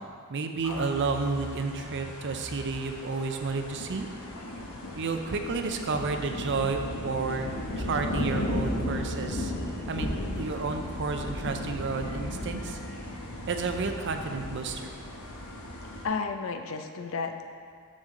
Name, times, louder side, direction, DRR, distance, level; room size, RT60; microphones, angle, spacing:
voice 1, 0.3-4.1 5.0-9.5 9.9-12.8 13.5-14.9, right 4 dB, 55° right, 6 dB, 0.5 m, -31 dB
sound 1, 0.6-16.0, left 1 dB, 85° left, 1.1 m, -35 dB
voice 2, 16.0-17.5, left 4 dB, 65° left, 6 dB, 0.5 m, -32 dB
7.5 x 6.4 x 3.7 m, 2.1 s
head